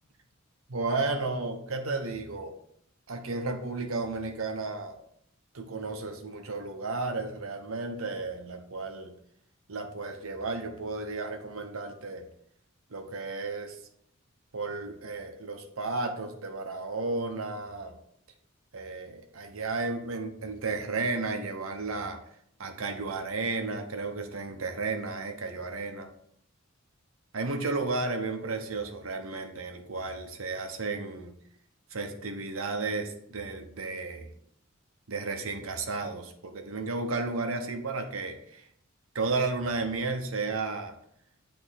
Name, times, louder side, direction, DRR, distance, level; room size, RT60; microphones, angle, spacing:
voice 1, 0.7-2.6 3.1-5.0 5.5-9.1 9.7-12.3 12.9-13.8 14.5-17.9 18.7-22.2 22.6-26.1 27.3-31.4 31.9-34.3 35.1-38.7 39.1-40.9, right 3 dB, 75° right, 5 dB, 0.9 m, -33 dB
8.2 x 3.4 x 4.0 m, 0.69 s
head